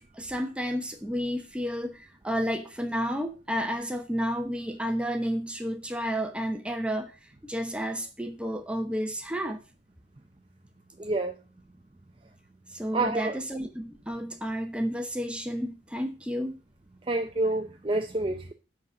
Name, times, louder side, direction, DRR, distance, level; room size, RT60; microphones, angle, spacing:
voice 1, 0.0-9.6 12.7-16.6, equal, 5° right, 0.9 m, -31 dB
voice 2, 11.0-11.4 12.9-13.4 17.1-18.5, right 2 dB, 25° right, 0.5 m, -28 dB
10.5 x 4.2 x 5.8 m
head